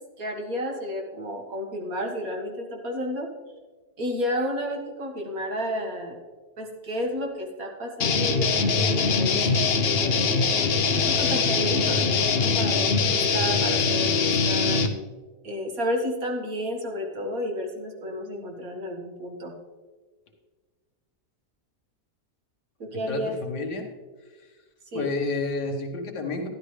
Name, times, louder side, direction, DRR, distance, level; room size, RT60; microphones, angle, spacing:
voice 1, 0.2-3.3 4.0-6.2 6.6-9.4 9.8-10.7 11.1-14.9 15.4-19.5 22.8-23.3 24.9-25.1, equal, 60° right, 1 dB, 2.1 m, -31 dB
sound 1, 8.0-14.9, left 4 dB, 50° left, 0.8 m, -22 dB
voice 2, 23.1-23.9 24.9-26.5, left 3 dB, 85° left, 3 dB, 2.0 m, -30 dB
12.5 x 11.5 x 3.2 m, 1.4 s
omnidirectional pair, 1.7 m